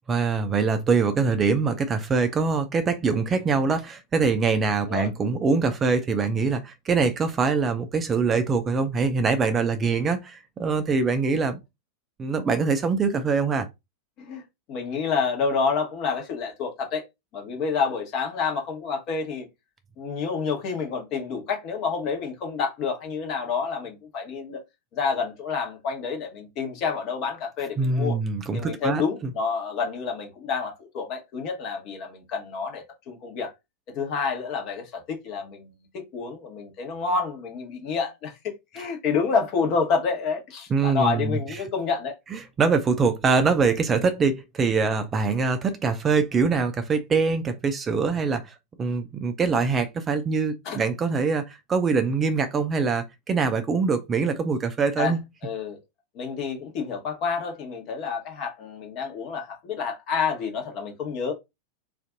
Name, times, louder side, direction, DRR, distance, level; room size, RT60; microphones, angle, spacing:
voice 1, 0.1-11.6 12.2-13.7 27.8-29.3 40.7-41.4 42.3-55.2, right 4 dB, 20° right, 0.4 m, -24 dB
voice 2, 14.2-17.0 17.3-19.5 20.0-24.6 24.9-28.2 28.5-33.5 33.9-42.1 50.6-50.8 55.0-55.1 55.4-55.8 56.1-61.3, left 5 dB, 40° left, 1.0 m, -28 dB
2.5 x 2.4 x 3.8 m
figure-of-eight pair, 90°, 0 cm